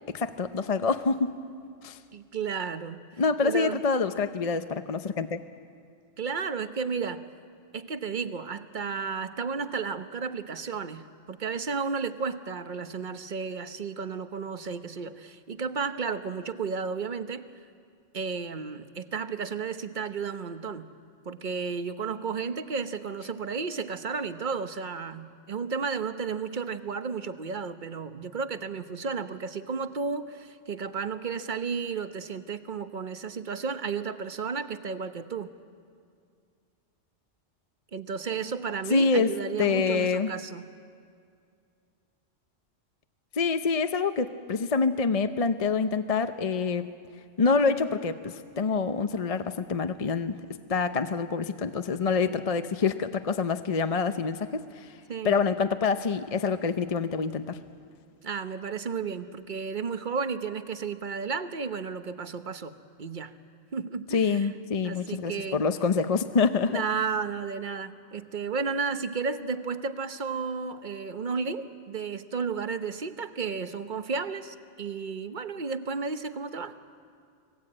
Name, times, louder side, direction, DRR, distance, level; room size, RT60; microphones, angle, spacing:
voice 1, 0.1-1.4 1.8-2.0 3.2-5.4 38.9-39.3 39.6-40.3 43.3-46.9 47.4-55.0 55.2-57.6 64.1-66.8, left 4 dB, 35° left, 9 dB, 0.7 m, -26 dB
voice 2, 2.1-3.0 3.4-3.8 6.2-7.2 7.7-17.5 18.1-20.9 21.2-35.5 37.9-40.6 52.2-52.3 55.1-55.4 58.2-63.3 63.7-64.5 64.8-65.6 66.7-76.7, right 5 dB, 45° right, 10 dB, 1.0 m, -33 dB
25.5 x 20.0 x 8.7 m, 2.3 s
omnidirectional pair, 1.3 m